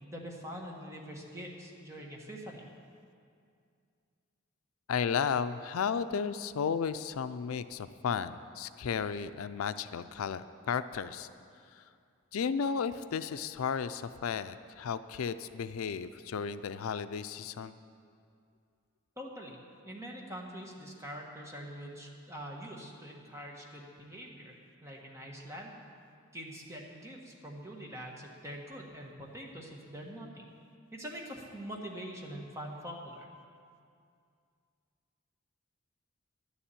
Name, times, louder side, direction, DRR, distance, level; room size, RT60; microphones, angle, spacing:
voice 1, 0.0-2.6 19.2-19.6 19.8-24.5 24.8-25.8 26.3-30.4 30.9-33.3, equal, 15° right, -1 dB, 1.3 m, -44 dB
voice 2, 4.9-11.3 11.7-11.8 12.3-17.8, left 6 dB, 80° left, 12 dB, 0.4 m, -34 dB
11.5 x 7.2 x 9.0 m, 2.3 s
head